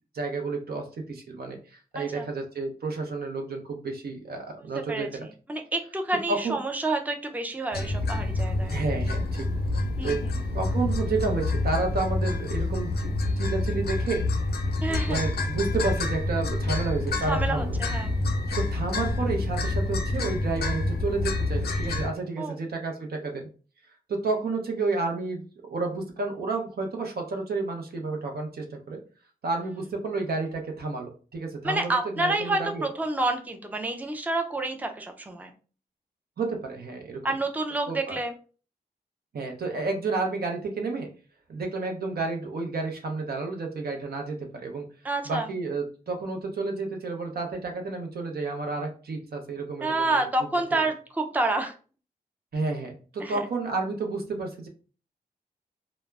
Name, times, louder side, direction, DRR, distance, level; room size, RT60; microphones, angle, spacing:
voice 1, 0.1-5.3 6.3-6.6 8.7-9.5 10.0-10.2 10.5-14.2 14.9-17.8 18.5-23.5 24.1-29.0 29.4-32.8 36.4-37.2 37.9-38.2 39.3-41.1 41.5-44.9 45.3-50.2 52.5-54.7, right 3 dB, 70° right, 2 dB, 0.7 m, -31 dB
voice 2, 1.9-2.3 4.8-8.7 10.0-10.3 14.8-15.2 17.3-18.1 22.4-22.6 31.6-35.5 37.2-38.3 45.0-45.5 49.8-51.7 53.2-53.5, right 2 dB, 10° right, 5 dB, 0.4 m, -29 dB
sound 1, 7.7-22.1, left 2 dB, 85° left, 0.5 m, -27 dB
2.2 x 2.0 x 3.3 m, 0.37 s
cardioid pair, 45°, 16 cm